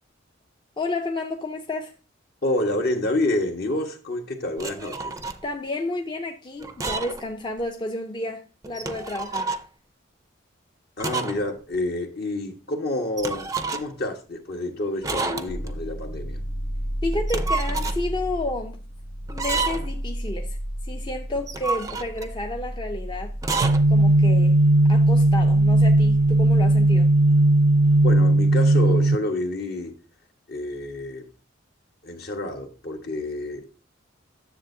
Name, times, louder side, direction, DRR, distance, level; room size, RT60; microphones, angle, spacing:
voice 1, 0.8-1.9 5.4-9.5 17.0-18.8 19.3-20.6 20.8-23.3 23.9-24.6 24.9-27.1, left 2 dB, 25° left, 0.6 m, -31 dB
voice 2, 2.4-5.2 11.0-16.4 28.0-29.9 30.5-31.3 32.0-33.7, left 1 dB, 55° left, 1.4 m, -28 dB
sound 1, 4.6-5.4 6.6-7.3 7.6-7.7 8.6-9.7 11.0-11.5 11.7-11.8 13.2-14.0 15.0-15.8 17.1-18.0 19.3-20.0 21.4-22.3 23.4-23.8, right 4 dB, 15° right, 0.5 m, -29 dB
sound 2, 15.5-28.2, equal, 80° left, 1.3 m, -33 dB
sound 3, 23.6-29.2, right 2 dB, 70° right, 0.3 m, -17 dB
9.9 x 7.2 x 2.7 m
head